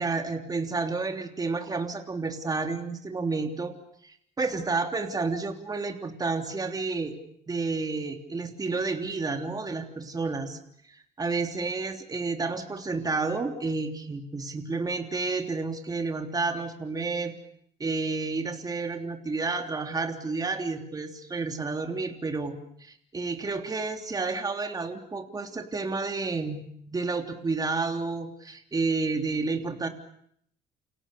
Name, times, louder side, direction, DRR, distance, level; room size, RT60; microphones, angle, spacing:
voice 1, 0.0-3.7 4.0-7.1 7.5-10.6 10.9-17.3 17.8-22.5 22.8-29.9, right 3 dB, 20° right, 5 dB, 3.3 m, -30 dB
29.5 x 27.0 x 6.9 m, 0.69 s
cardioid pair, 110°, 17 cm